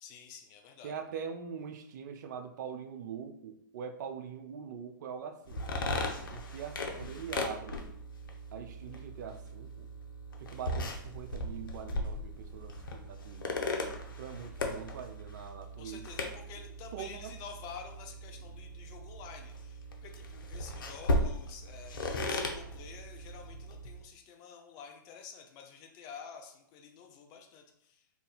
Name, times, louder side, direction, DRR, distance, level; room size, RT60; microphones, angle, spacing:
voice 1, 0.0-0.9 15.8-28.0, left 6 dB, 35° left, 3 dB, 0.6 m, -49 dB
voice 2, 0.8-5.7 6.3-7.9 8.5-9.9 10.4-13.5 14.2-16.0 16.9-17.4, right 7 dB, 55° right, 7 dB, 0.4 m, -43 dB
sound 1, 5.5-24.0, left 1 dB, 75° left, 0.7 m, -37 dB
2.7 x 2.5 x 4.0 m, 0.70 s
hypercardioid pair, 120°, 11 cm